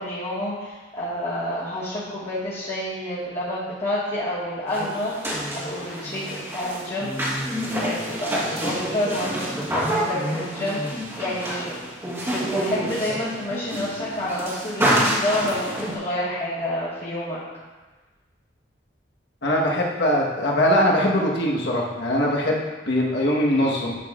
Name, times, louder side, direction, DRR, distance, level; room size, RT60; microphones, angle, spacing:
voice 1, 0.0-7.1 7.6-11.7 12.2-17.4, left 1 dB, 35° left, -10 dB, 1.6 m, -29 dB
sound 1, 4.7-16.0, equal, 15° right, 1.3 m, -28 dB
voice 2, 19.4-24.0, equal, 65° left, -2 dB, 1.3 m, -21 dB
10.0 x 6.1 x 2.5 m, 1.2 s
head